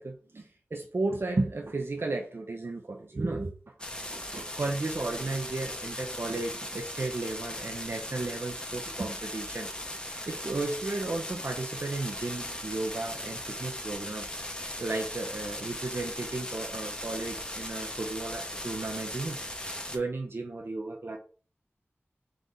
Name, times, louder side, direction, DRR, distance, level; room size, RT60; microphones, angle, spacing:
voice 1, 0.0-21.2, right 2 dB, 65° right, 1 dB, 0.6 m, -34 dB
sound 1, 3.8-20.0, left 1 dB, 20° left, 0.9 m, -38 dB
3.8 x 3.3 x 4.0 m, 0.39 s
wide cardioid pair, 50°, 4 cm